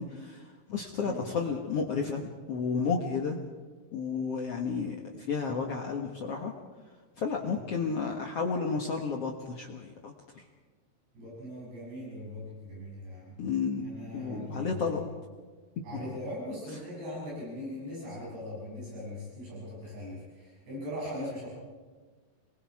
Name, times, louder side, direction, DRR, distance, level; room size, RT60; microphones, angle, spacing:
voice 1, 0.0-3.4 3.9-6.5 7.2-10.4 13.4-13.9 14.1-15.1 15.9-16.2, left 5 dB, 85° left, 1 dB, 1.3 m, -32 dB
voice 2, 11.2-13.4 13.8-15.0 15.8-21.5, left 1 dB, 70° right, -6 dB, 9.0 m, -40 dB
28.0 x 22.0 x 4.8 m, 1.4 s
omnidirectional pair, 5.0 m